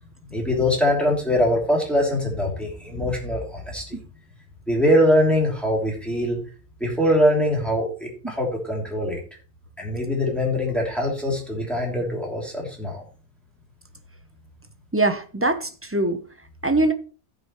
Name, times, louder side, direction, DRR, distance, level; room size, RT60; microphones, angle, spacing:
voice 1, 0.3-4.0 4.7-6.4 6.8-9.2 9.8-13.0, equal, ahead, -2 dB, 2.9 m, -22 dB
voice 2, 14.9-16.2 16.6-16.9, right 2 dB, 15° right, 7 dB, 0.5 m, -22 dB
16.5 x 6.1 x 3.1 m, 0.37 s
omnidirectional pair, 1.5 m